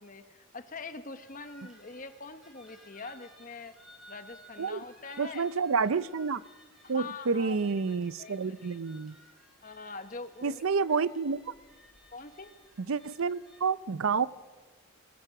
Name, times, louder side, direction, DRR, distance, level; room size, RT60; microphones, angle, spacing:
voice 1, 0.0-3.7 4.1-5.5 6.8-8.8 9.6-10.6 10.9-11.0 12.1-12.5, left 4 dB, 35° left, 9 dB, 1.1 m, -44 dB
sound 1, 1.2-13.6, equal, ahead, 4.1 m, -58 dB
voice 2, 5.2-6.4 6.9-9.2 10.4-11.5 12.9-14.3, right 5 dB, 70° right, 17 dB, 0.6 m, -29 dB
21.0 x 21.0 x 6.0 m, 1.3 s
head